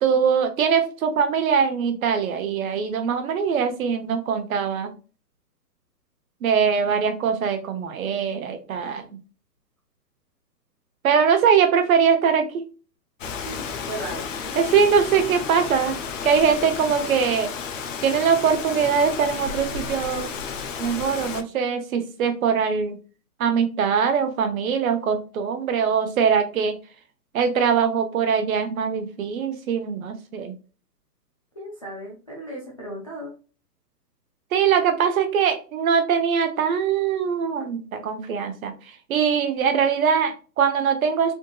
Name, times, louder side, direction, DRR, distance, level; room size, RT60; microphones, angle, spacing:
voice 1, 0.0-4.9 6.4-9.1 11.0-12.7 14.6-16.0 16.2-17.5 18.0-20.3 20.8-23.0 23.4-26.8 27.3-30.5 34.5-38.7 39.1-41.3, right 6 dB, 55° right, 7 dB, 0.9 m, -22 dB
Rain, 13.2-21.4, left 6 dB, 50° left, 0.7 m, -32 dB
voice 2, 13.4-14.7 31.6-33.3, right 1 dB, 25° left, -4 dB, 0.3 m, -36 dB
3.6 x 2.6 x 2.2 m, 0.35 s
hypercardioid pair, 135°, 49 cm